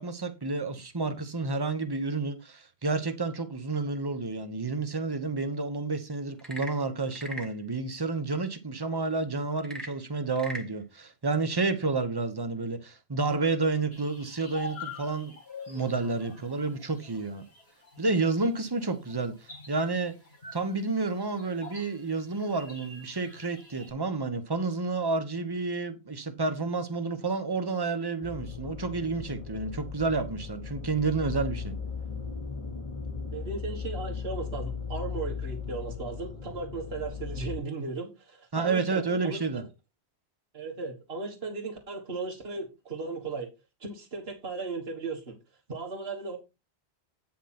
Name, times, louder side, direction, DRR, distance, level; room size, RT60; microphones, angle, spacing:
voice 1, 0.0-15.3 15.7-17.4 18.0-20.1 20.5-31.7 38.5-39.6, right 3 dB, 25° right, 1.1 m, -30 dB
Frog / Percussion / Wood, 6.3-7.6 9.6-10.7, right 1 dB, ahead, 1.4 m, -40 dB
sound 1, 13.9-23.9, left 4 dB, 70° left, 2.5 m, -46 dB
sound 2, 28.2-37.6, left 6 dB, 30° left, 1.3 m, -37 dB
voice 2, 33.3-39.6 40.5-43.5 43.8-45.4 45.7-46.4, right 4 dB, 70° right, 2.0 m, -36 dB
9.2 x 5.8 x 4.3 m
omnidirectional pair, 1.1 m